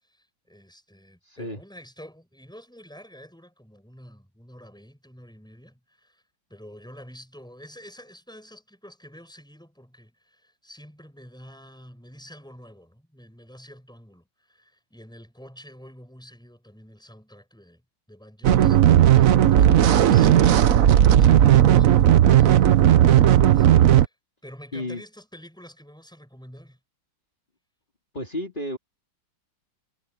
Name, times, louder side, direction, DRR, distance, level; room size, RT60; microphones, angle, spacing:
voice 1, 0.0-6.2 6.5-17.8 18.1-20.4 20.7-24.2 24.4-26.8, equal, ahead, 7.7 m, -48 dB
voice 2, 1.2-1.6 19.7-20.2 24.7-25.0 28.1-28.8, left 1 dB, 25° left, 3.9 m, -33 dB
sound 1, 18.4-24.1, right 11 dB, 60° right, 1.0 m, -15 dB
omnidirectional pair, 2.1 m